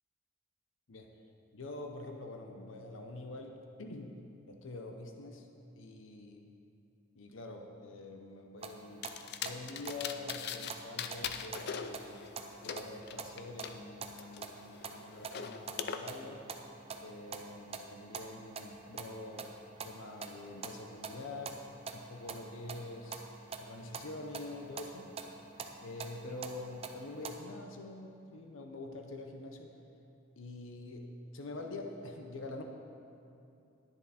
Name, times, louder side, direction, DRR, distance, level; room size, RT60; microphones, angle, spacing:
voice 1, 1.5-5.5 5.8-6.5 7.1-9.1 9.4-12.3 12.6-16.5 17.0-19.5 19.8-23.3 23.6-25.1 25.8-29.7 30.4-32.6, left 2 dB, 80° left, 3 dB, 0.8 m, -46 dB
sound 1, 8.6-27.4, right 4 dB, 30° right, 0.6 m, -47 dB
sound 2, 9.0-10.7 11.0-13.7 14.2-16.0, left 7 dB, 55° left, 0.5 m, -41 dB
10.5 x 10.0 x 4.2 m, 2.7 s
head